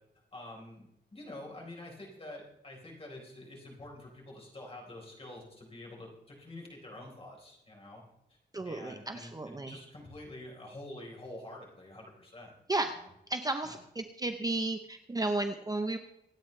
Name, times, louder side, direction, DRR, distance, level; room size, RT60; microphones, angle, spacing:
voice 1, 0.3-8.0 8.6-12.6 12.9-13.1 13.6-13.7, left 1 dB, 30° left, -1 dB, 4.1 m, -47 dB
voice 2, 8.5-9.8 12.7-13.0 13.3-16.0, right 2 dB, 20° right, 6 dB, 0.7 m, -33 dB
25.5 x 9.0 x 3.3 m, 0.83 s
wide cardioid pair, 150°, 18 cm